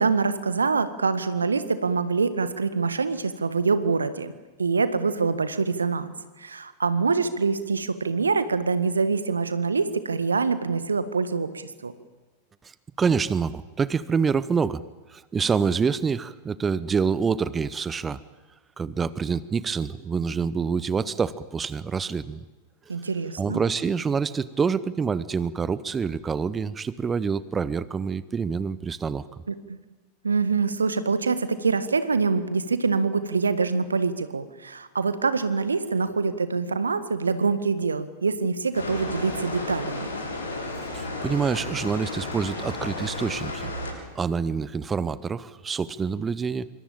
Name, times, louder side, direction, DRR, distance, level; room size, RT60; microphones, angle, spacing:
voice 1, 0.0-4.3 4.6-6.1 6.4-11.9 22.9-23.6 29.5-29.8 30.2-40.1, right 4 dB, 75° right, 13 dB, 1.7 m, -25 dB
voice 2, 13.0-14.8 15.1-18.2 18.8-22.4 23.4-29.3 40.9-43.7 44.1-46.7, right 5 dB, 20° right, 17 dB, 0.9 m, -26 dB
sound 1, 38.7-43.9, left 2 dB, 70° left, 7.3 m, -33 dB
26.5 x 25.0 x 8.9 m, 1.2 s
figure-of-eight pair, 90°, 0 cm